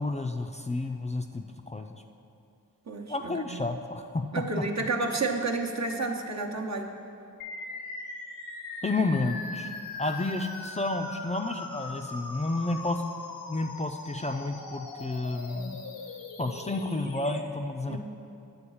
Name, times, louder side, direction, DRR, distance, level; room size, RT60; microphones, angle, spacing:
voice 1, 0.0-2.0 3.1-4.3 8.8-9.7 10.0-13.0 13.5-15.8 16.4-18.0, left 2 dB, 20° left, 4 dB, 0.4 m, -31 dB
voice 2, 2.9-3.6 4.3-6.9 17.9-18.0, right 3 dB, 50° right, 1 dB, 0.9 m, -31 dB
sound 1, 7.4-17.4, left 3 dB, 90° left, 0.8 m, -40 dB
8.6 x 4.0 x 7.1 m, 2.5 s
cardioid pair, 45°, 35 cm